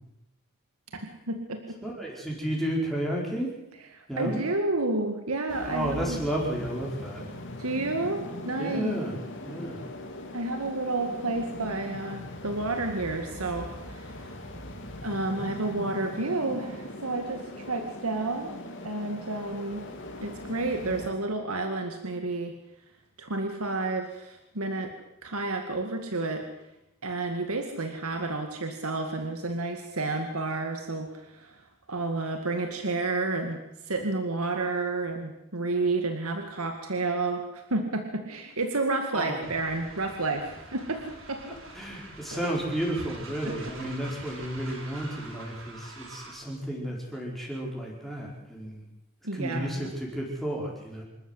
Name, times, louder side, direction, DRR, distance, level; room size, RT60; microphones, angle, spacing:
voice 1, 0.9-1.8 3.9-6.2 7.6-9.0 10.3-14.2 15.0-18.6 18.8-19.9 20.2-22.6 23.2-24.9 25.2-26.5 27.0-31.6 31.9-41.6 42.3-42.4 43.4-43.7 49.2-49.9, right 2 dB, 90° right, 5 dB, 2.1 m, -31 dB
voice 2, 1.8-3.5 4.1-4.4 5.6-7.3 8.6-9.2 9.4-9.9 39.1-39.5 41.5-48.8 49.3-51.0, right 1 dB, ahead, -3 dB, 4.6 m, -32 dB
sound 1, 5.5-21.1, left 1 dB, 55° left, 3.1 m, -40 dB
Train, 39.4-46.5, right 2 dB, 65° right, 6.5 m, -46 dB
26.5 x 13.5 x 8.2 m, 0.89 s
head